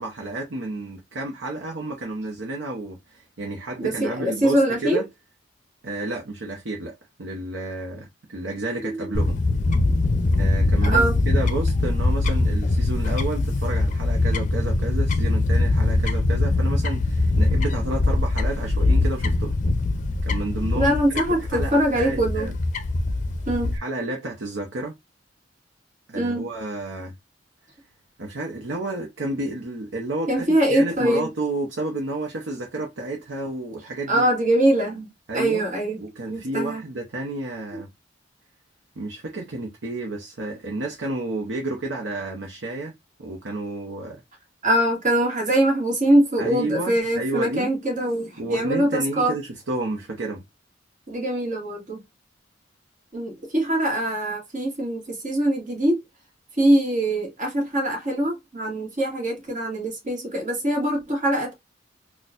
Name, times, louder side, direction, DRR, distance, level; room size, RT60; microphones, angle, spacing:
voice 1, 0.0-5.0 5.8-9.4 10.4-19.6 20.2-22.5 23.7-24.9 26.1-27.1 28.2-30.4 30.7-34.2 35.3-35.7 36.0-37.9 39.0-42.9 43.2-44.2 46.4-47.7 48.4-50.4, right 2 dB, 85° right, 0.8 m, -31 dB
voice 2, 3.8-5.0 8.8-9.0 10.9-11.2 20.7-22.5 23.5-23.8 26.1-26.5 30.3-31.3 34.1-36.0 36.3-36.8 44.6-49.3 51.1-52.0 53.1-56.0 56.6-61.5, right 1 dB, 45° right, 1.6 m, -23 dB
Fowl / Bird, 9.1-23.8, left 2 dB, 45° left, 0.5 m, -22 dB
4.2 x 2.3 x 2.4 m
head